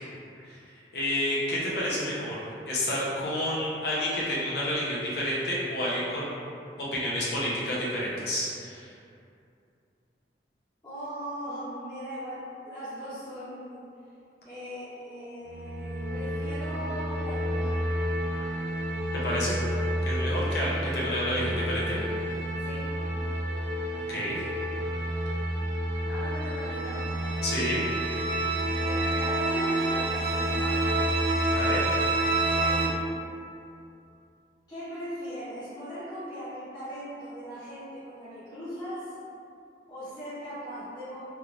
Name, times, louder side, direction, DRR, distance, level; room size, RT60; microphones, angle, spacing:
voice 1, 0.9-6.3 6.8-8.9 19.2-19.7 20.0-22.0 24.1-24.4 27.4-27.8 31.5-31.8, left 1 dB, 65° left, -6 dB, 0.8 m, -29 dB
voice 2, 10.8-13.8 14.4-17.9 20.3-20.7 22.6-22.9 26.1-27.2 28.8-31.1 32.5-33.1 34.7-39.1 39.9-41.2, equal, 20° left, -15 dB, 0.8 m, -39 dB
sound 1, 15.5-32.9, right 1 dB, 70° right, 0.4 m, -29 dB
3.3 x 3.0 x 2.4 m, 2.5 s
head